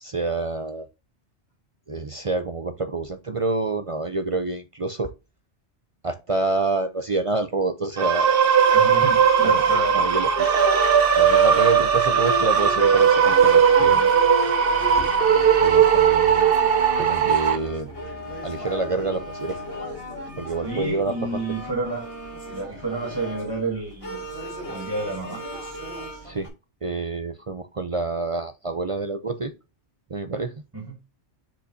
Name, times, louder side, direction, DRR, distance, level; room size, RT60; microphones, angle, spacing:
voice 1, 0.0-0.9 1.9-5.1 6.0-8.4 9.4-9.6 9.9-10.3 11.2-14.0 15.6-16.5 17.0-17.9 18.4-19.6 20.4-21.4 26.2-26.5 26.8-29.5 30.1-30.5, right 3 dB, 40° right, 9 dB, 0.5 m, -27 dB
sound 1, 8.0-17.6, right 7 dB, 55° right, 1.0 m, -18 dB
sound 2, 8.7-26.5, equal, 30° left, 2.6 m, -35 dB
voice 2, 8.7-10.0 13.9-14.1 20.6-22.1 22.4-24.2 24.6-25.4 30.7-30.9, right 2 dB, 20° right, -1 dB, 1.6 m, -30 dB
7.0 x 5.2 x 2.7 m, 0.26 s
omnidirectional pair, 1.2 m